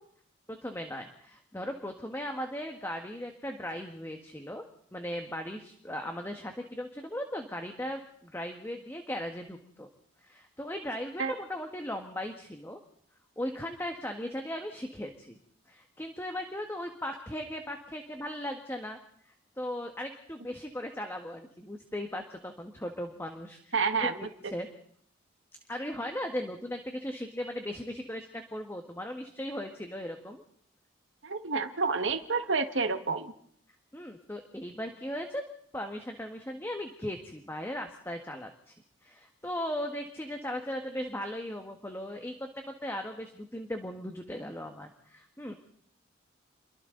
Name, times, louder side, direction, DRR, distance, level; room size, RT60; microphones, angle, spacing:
voice 1, 0.5-4.6 4.9-9.9 10.2-12.8 13.4-15.4 15.7-19.0 19.2-23.7 24.0-24.7 25.7-30.4 33.9-35.4 35.7-38.7 39.0-45.6, left 1 dB, 10° left, 4 dB, 1.5 m, -37 dB
voice 2, 23.7-24.2 24.4-24.5 31.2-33.3, right 4 dB, 70° right, 7 dB, 1.7 m, -29 dB
29.0 x 23.0 x 4.0 m, 0.65 s
head